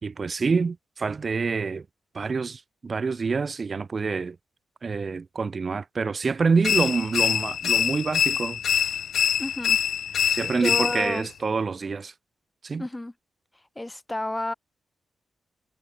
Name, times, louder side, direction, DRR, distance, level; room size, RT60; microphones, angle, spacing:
voice 1, 0.0-1.8 2.1-4.4 4.8-8.6 10.3-12.1 12.6-12.8, right 4 dB, 50° right, 3.7 m, -27 dB
sound 1, 6.6-11.3, left 9 dB, 75° left, 1.9 m, -25 dB
voice 2, 9.4-9.8 10.5-11.3 12.8-13.1 13.7-14.5, left 1 dB, 15° left, 4.6 m, -31 dB
supercardioid pair, 40°, 0 cm